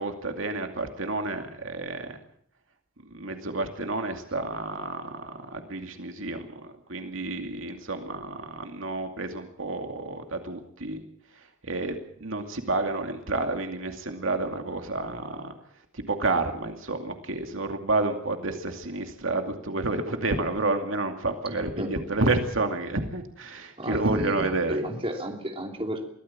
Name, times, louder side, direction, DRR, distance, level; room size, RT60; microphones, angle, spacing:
voice 1, 0.0-2.2 3.1-11.0 11.6-15.5 15.9-24.8, right 2 dB, 75° right, 5 dB, 2.5 m, -30 dB
voice 2, 23.8-26.1, right 1 dB, 30° right, 3 dB, 3.0 m, -32 dB
23.5 x 16.5 x 7.4 m, 0.67 s
head